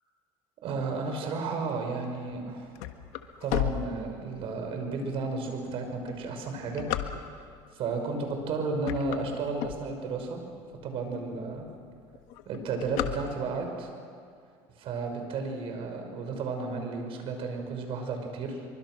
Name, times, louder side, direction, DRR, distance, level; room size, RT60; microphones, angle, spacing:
voice 1, 0.6-2.7 3.4-6.9 7.7-10.4 10.8-11.7 12.4-13.9 14.8-18.7, right 4 dB, 60° right, 4 dB, 5.7 m, -33 dB
sound 1, 2.3-4.6 5.2-5.3 5.9-7.6 8.3-8.5 8.8-10.3 10.8-10.9 11.1-11.2 11.5-11.9 12.1-13.8, left 13 dB, 80° left, 1.5 m, -33 dB
25.5 x 24.0 x 6.4 m, 2.3 s
supercardioid pair, 110°, 11 cm